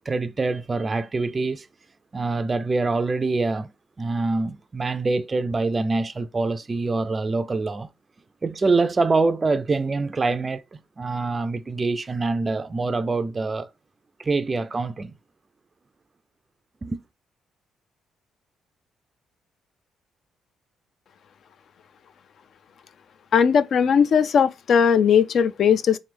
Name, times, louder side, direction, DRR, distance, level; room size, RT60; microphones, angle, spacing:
voice 1, 0.1-1.7 2.1-3.7 4.0-7.9 8.4-13.7 14.2-15.1 16.8-17.0, right 3 dB, 30° right, 0.3 m, -25 dB
voice 2, 23.3-26.0, left 7 dB, 60° left, 0.4 m, -18 dB
3.5 x 3.2 x 3.4 m
cardioid pair, 90°, 0 cm